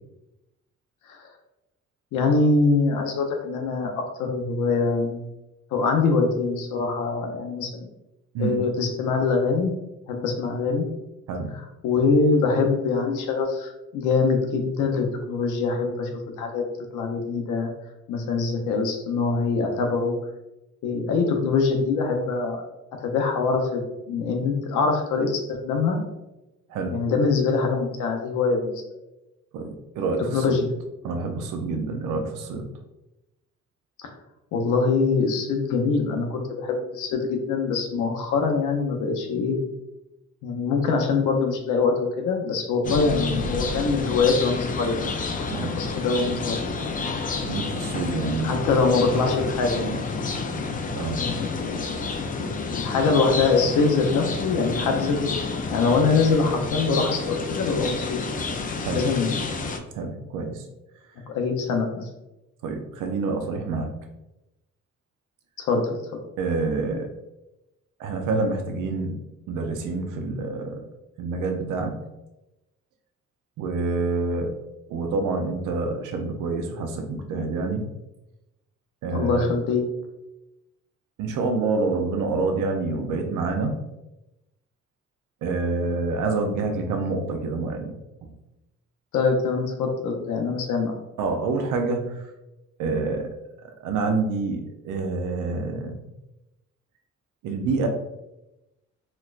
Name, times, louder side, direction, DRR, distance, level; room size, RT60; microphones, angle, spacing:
voice 1, 2.1-3.9 4.2-5.3 5.7-7.9 8.4-9.7 10.1-10.9 11.5-16.6 16.9-17.7 18.1-20.2 20.8-22.6 23.0-23.8 24.1-26.0 26.9-28.8 30.3-30.7 34.5-39.6 40.4-45.0 45.5-46.6 48.4-50.0 51.2-52.0 52.3-58.5 58.8-59.5 61.3-62.1 65.6-66.2 79.1-79.8 89.1-91.0, left 4 dB, 85° left, 3 dB, 0.7 m, -24 dB
voice 2, 26.7-27.0 29.5-30.4 31.0-32.7 45.5-45.8 47.3-49.2 50.9-51.3 58.8-59.1 59.9-60.6 62.6-63.9 66.4-67.1 68.0-70.8 71.2-71.9 73.6-74.6 74.9-77.8 79.0-79.5 81.2-83.8 85.4-87.9 88.2-88.3 91.2-92.2 92.8-93.3 93.8-96.0 97.4-97.9, right 3 dB, 85° right, 3 dB, 0.6 m, -27 dB
sound 1, 42.8-59.8, left 4 dB, 30° left, 0.4 m, -29 dB
4.2 x 2.1 x 2.4 m, 0.94 s
cardioid pair, 90°, 30 cm